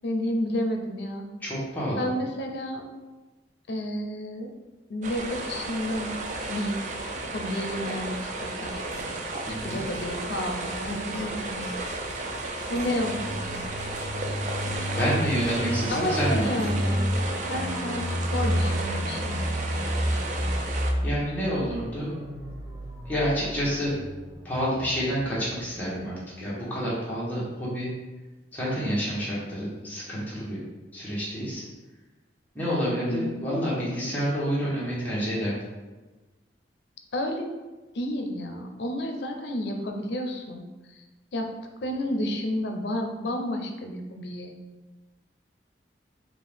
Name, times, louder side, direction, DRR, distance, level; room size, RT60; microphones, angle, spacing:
voice 1, 0.0-1.3 2.0-2.9 3.7-4.5 4.9-6.1 6.5-6.8 7.3-8.8 9.6-11.8 12.7-13.6 15.9-17.1 17.5-19.4 32.9-33.5 37.1-37.5 37.9-40.6 40.9-41.0 41.3-41.5 41.8-44.5, left 1 dB, 70° left, 4 dB, 0.5 m, -31 dB
voice 2, 1.4-2.0 9.4-9.8 14.9-16.5 21.0-22.1 23.1-24.0 24.4-27.9 28.5-30.6 30.9-31.6 32.5-35.6, equal, 10° left, -8 dB, 1.2 m, -28 dB
sound 1, 5.0-20.9, right 2 dB, 45° right, 0.4 m, -33 dB
sound 2, 8.7-17.3, equal, 35° left, 1.2 m, -45 dB
sound 3, 13.0-25.4 25.7-25.8, equal, 10° right, 0.8 m, -31 dB
4.4 x 2.5 x 3.5 m, 1.2 s
head